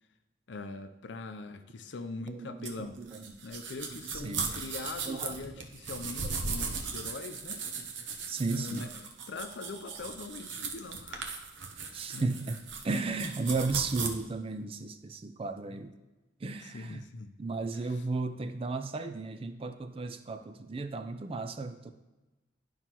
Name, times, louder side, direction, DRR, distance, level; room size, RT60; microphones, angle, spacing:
voice 1, 0.5-3.0 3.4-7.6 8.5-11.4 11.8-12.3 15.7-15.8 16.6-17.3 17.7-18.0, left 3 dB, 65° left, 9 dB, 0.5 m, -42 dB
voice 2, 2.3-3.2 3.9-4.5 5.1-5.4 7.8-7.9 8.3-8.9 11.9-12.6 12.8-15.9 16.4-17.1 17.4-21.9, right 3 dB, 30° right, 8 dB, 0.4 m, -34 dB
sound 1, 2.6-14.1, right 5 dB, 70° right, 0.8 m, -38 dB
11.0 x 5.5 x 3.0 m, 1.1 s
head